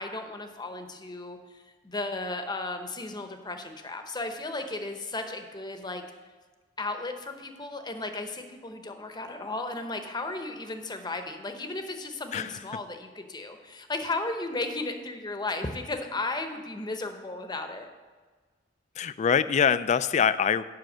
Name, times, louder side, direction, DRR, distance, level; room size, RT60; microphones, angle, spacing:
voice 1, 0.0-6.0 6.8-17.9, left 2 dB, 25° left, 6 dB, 0.8 m, -35 dB
voice 2, 12.3-12.6 19.0-20.6, left 7 dB, 40° left, 15 dB, 0.3 m, -24 dB
7.7 x 5.8 x 7.3 m, 1.4 s
head